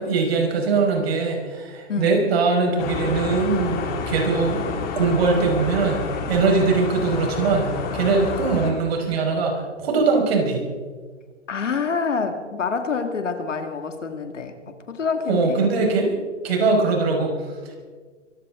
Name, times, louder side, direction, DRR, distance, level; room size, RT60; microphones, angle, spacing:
voice 1, 0.0-4.7 4.9-10.6 15.3-16.2 16.4-17.8, right 4 dB, 55° right, 1 dB, 5.3 m, -21 dB
sound 1, 2.8-8.7, left 5 dB, 25° left, 2.4 m, -29 dB
voice 2, 11.5-15.7, left 5 dB, 80° left, 6 dB, 2.3 m, -27 dB
23.5 x 15.5 x 3.8 m, 1.5 s
hypercardioid pair, 135°, 37 cm